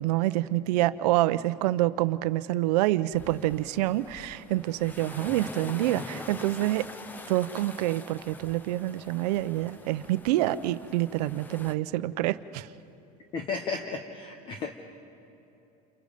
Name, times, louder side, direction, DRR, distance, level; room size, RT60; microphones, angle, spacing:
voice 1, 0.0-6.9 7.3-12.7, right 15 dB, 80° right, 13 dB, 0.8 m, -27 dB
sound 1, 3.1-11.7, left 3 dB, 10° left, 0.6 m, -44 dB
voice 2, 13.3-14.7, left 4 dB, 25° left, 5 dB, 1.0 m, -34 dB
30.0 x 28.0 x 5.2 m, 3.0 s
cardioid pair, 180°, 20 cm